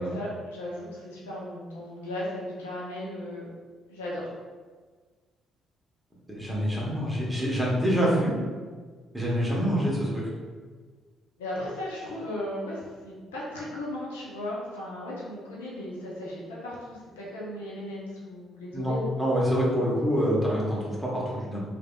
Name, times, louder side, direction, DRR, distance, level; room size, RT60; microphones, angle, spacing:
voice 1, 0.0-3.5 3.9-4.3 11.4-19.1, left 1 dB, 80° left, -6 dB, 0.6 m, -36 dB
voice 2, 6.3-8.4 9.1-10.3 18.7-21.6, equal, 5° right, -6 dB, 1.1 m, -26 dB
3.2 x 2.5 x 2.2 m, 1.5 s
figure-of-eight pair, 45°, 0 cm